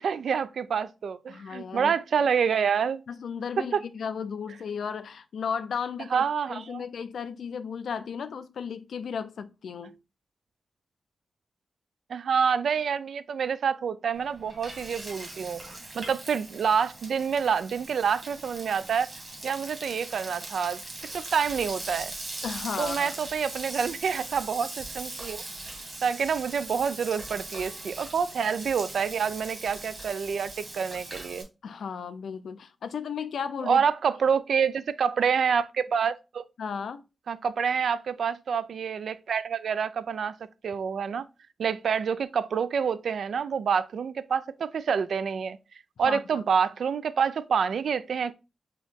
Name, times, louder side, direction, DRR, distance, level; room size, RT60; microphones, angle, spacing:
voice 1, 0.0-3.0 3.7-3.8 6.1-6.8 12.1-15.6 15.9-19.1 19.4-20.8 21.1-22.1 22.8-25.4 26.0-31.5 33.6-36.4 37.3-40.4 40.6-41.3 41.6-45.6 46.0-48.3, right 6 dB, 85° right, 0.3 m, -27 dB
voice 2, 1.3-1.9 3.1-10.0 22.4-23.1 31.6-33.8 36.6-37.0 46.0-46.4, left 6 dB, 90° left, 0.4 m, -35 dB
Frying (food), 14.1-31.4, right 2 dB, 35° right, 1.5 m, -40 dB
4.5 x 2.9 x 3.5 m
wide cardioid pair, 150°, 0 cm